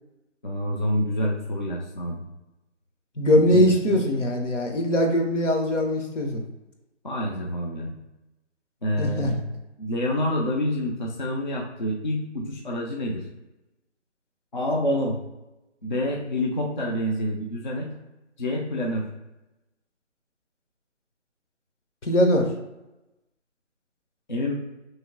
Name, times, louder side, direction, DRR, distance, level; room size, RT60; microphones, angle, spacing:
voice 1, 0.4-2.2 3.5-3.6 3.9-4.0 7.0-7.9 8.8-9.5 9.8-13.2 14.5-15.2 15.8-17.9 18.4-19.1 24.3-24.5, left 1 dB, 40° left, -1 dB, 0.4 m, -27 dB
voice 2, 3.2-6.4 9.0-9.3 22.0-22.5, left 1 dB, 75° left, 3 dB, 0.9 m, -21 dB
3.0 x 2.7 x 3.6 m, 0.99 s
figure-of-eight pair, 155°, 37 cm